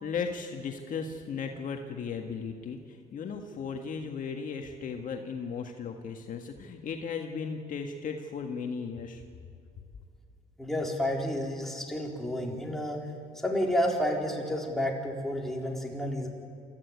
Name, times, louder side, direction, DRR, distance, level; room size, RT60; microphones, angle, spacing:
voice 1, 0.0-9.2, left 5 dB, 50° left, 4 dB, 1.7 m, -36 dB
voice 2, 10.6-13.0 13.4-16.3, equal, ahead, -1 dB, 4.0 m, -30 dB
27.5 x 14.0 x 9.6 m, 2.4 s
cardioid pair, 110°, 17 cm